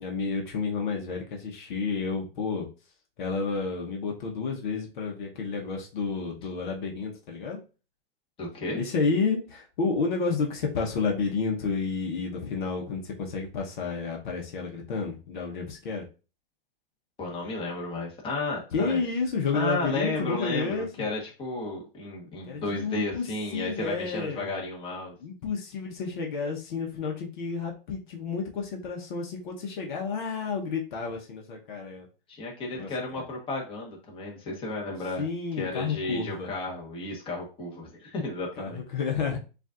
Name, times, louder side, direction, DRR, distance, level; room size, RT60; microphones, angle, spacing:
voice 1, 0.0-2.7 3.2-7.6 8.8-16.0 18.7-21.1 22.5-23.2 23.5-24.5 25.2-32.1 32.7-33.2 35.2-36.5 38.6-39.4, left 4 dB, 55° left, 1 dB, 1.0 m, -30 dB
voice 2, 8.4-8.8 17.2-19.0 19.5-25.2 32.3-35.2 35.6-38.8, left 2 dB, 20° left, -2 dB, 1.2 m, -33 dB
7.0 x 2.6 x 2.5 m, 0.33 s
hypercardioid pair, 135°, 29 cm